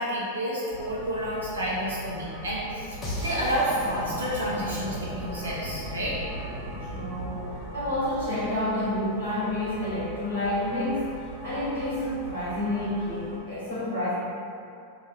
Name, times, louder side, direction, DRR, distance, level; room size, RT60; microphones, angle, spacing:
voice 1, 0.0-6.2, equal, 75° right, -6 dB, 0.4 m, -30 dB
sound 1, 0.7-13.4, right 1 dB, 40° right, 0.9 m, -40 dB
sound 2, 3.0-9.0, equal, 25° left, 0.6 m, -37 dB
voice 2, 6.8-11.1 11.4-14.1, left 1 dB, 70° left, -11 dB, 0.8 m, -29 dB
2.2 x 2.2 x 3.0 m, 2.5 s
figure-of-eight pair, 90°, 0 cm